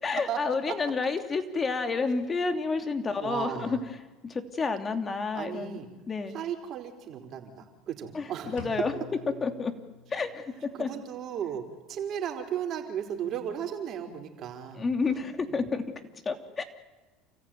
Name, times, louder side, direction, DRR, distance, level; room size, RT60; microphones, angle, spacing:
voice 1, 0.0-3.8 4.2-5.8 6.1-6.4 8.1-8.9 9.4-9.7 10.1-10.9 14.8-15.8 16.2-16.6, left 4 dB, 25° left, 7 dB, 3.0 m, -30 dB
voice 2, 3.2-3.8 5.3-5.9 6.3-8.6 10.8-15.7, right 9 dB, 50° right, 3 dB, 4.7 m, -35 dB
sound 1, 8.6-10.5, left 7 dB, 80° left, 2.8 m, -47 dB
29.0 x 15.0 x 9.3 m, 1.2 s
hypercardioid pair, 90°, 0 cm